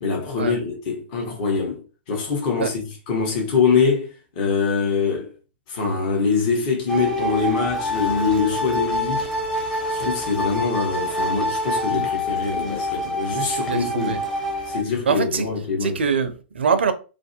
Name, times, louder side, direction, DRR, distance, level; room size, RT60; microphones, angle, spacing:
voice 1, 0.0-5.3 5.7-9.3 9.9-14.2 14.7-16.0, left 5 dB, 45° left, 0.9 m, -24 dB
sound 1, 6.9-14.8, left 1 dB, 10° left, 0.6 m, -26 dB
voice 2, 13.7-14.2 15.1-15.5 15.8-16.9, right 6 dB, 80° right, 0.5 m, -23 dB
2.5 x 2.1 x 2.6 m
hypercardioid pair, 125°, 6 cm